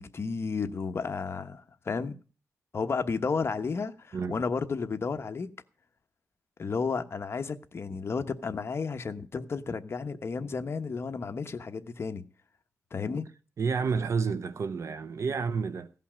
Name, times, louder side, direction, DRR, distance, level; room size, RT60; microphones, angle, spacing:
voice 1, 0.0-2.2 2.7-5.5 6.6-12.2 12.9-13.3, left 5 dB, 50° left, 1.1 m, -32 dB
voice 2, 13.6-15.9, right 5 dB, 60° right, 0.7 m, -30 dB
15.5 x 5.7 x 8.6 m
wide cardioid pair, 100°, 6 cm